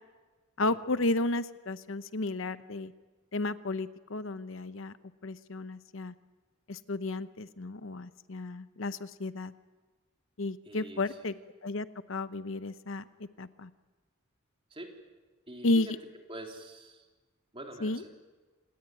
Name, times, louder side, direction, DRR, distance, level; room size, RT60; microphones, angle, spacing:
voice 1, 0.6-2.9 3.3-5.0 5.2-6.1 6.7-9.5 10.4-11.3 11.6-13.0 13.4-13.7 15.6-16.0 17.8-18.0, left 2 dB, 70° left, 13 dB, 0.9 m, -32 dB
voice 2, 10.6-11.1 14.7-14.9 15.5-15.9 16.3-17.0 17.5-18.1, right 1 dB, 25° right, 2 dB, 3.5 m, -45 dB
27.0 x 20.0 x 9.1 m, 1.3 s
head